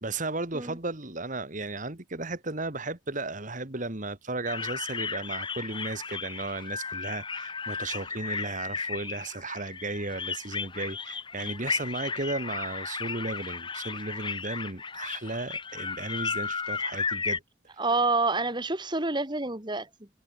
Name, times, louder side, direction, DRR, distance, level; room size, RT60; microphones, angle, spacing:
voice 1, 0.0-17.4, right 2 dB, 40° right, 2.1 m, -35 dB
sound 1, 4.5-17.4, left 5 dB, 25° left, 1.8 m, -34 dB
voice 2, 17.8-20.1, right 3 dB, 25° right, 2.4 m, -28 dB
head